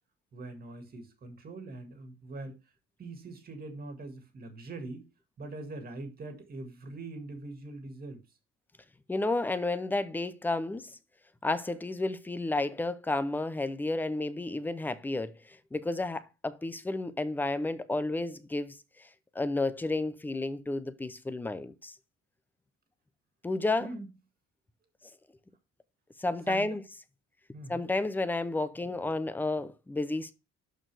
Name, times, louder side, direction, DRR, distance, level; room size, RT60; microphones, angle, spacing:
voice 1, 0.3-2.6 3.0-5.1 5.4-8.2 23.8-24.1 26.5-26.7 27.5-27.9, right 2 dB, 30° right, 1.9 m, -42 dB
voice 2, 9.1-11.0 11.4-19.1 19.3-21.9 23.4-23.9 26.2-26.8 27.7-30.3, left 2 dB, 5° left, 0.5 m, -31 dB
12.0 x 4.5 x 3.3 m
cardioid pair, 175°, 30 cm